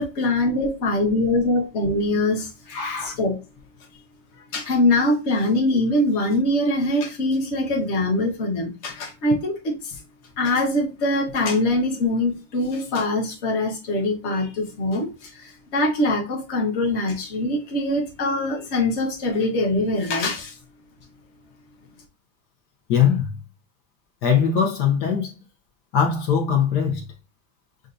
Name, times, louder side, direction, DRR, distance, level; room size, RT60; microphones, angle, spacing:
voice 1, 0.0-3.4 4.5-9.9 10.4-20.5, left 1 dB, 40° left, 1.1 m, -23 dB
voice 2, 2.7-3.2 22.9-23.4 24.2-25.4 25.9-27.1, left 7 dB, 60° left, 1.2 m, -21 dB
6.7 x 2.6 x 2.5 m
omnidirectional pair, 2.3 m